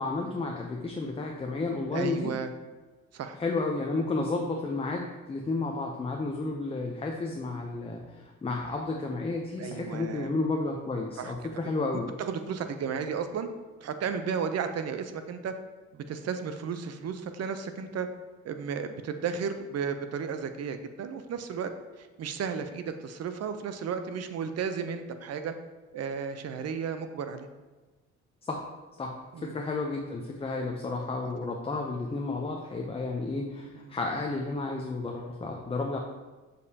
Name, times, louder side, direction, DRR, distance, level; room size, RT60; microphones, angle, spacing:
voice 1, 0.0-2.3 3.4-12.1 28.4-28.6 29.0-29.1 29.4-36.0, left 3 dB, 20° left, 1 dB, 0.6 m, -32 dB
voice 2, 1.9-2.5 3.1-3.4 9.6-10.3 11.2-11.3 12.2-13.5 13.8-15.5 15.9-18.1 18.4-21.7 22.0-25.5 25.9-27.5 29.3-29.6 33.7-34.0, right 6 dB, 55° right, 8 dB, 0.6 m, -33 dB
6.5 x 5.3 x 2.8 m, 1.3 s
cardioid pair, 90°, 30 cm